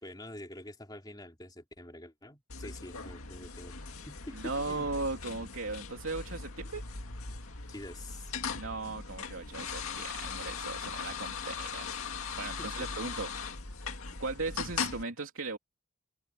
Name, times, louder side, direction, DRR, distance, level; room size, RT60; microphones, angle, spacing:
voice 1, 0.0-3.7 4.1-4.9 7.7-8.3 12.6-13.1, left 1 dB, 20° left, 3.1 m, -46 dB
sound 1, 2.5-15.0, left 5 dB, 90° left, 2.1 m, -39 dB
voice 2, 4.3-6.8 8.5-11.9 12.4-13.3 14.2-15.6, right 3 dB, 75° right, 3.1 m, -37 dB
head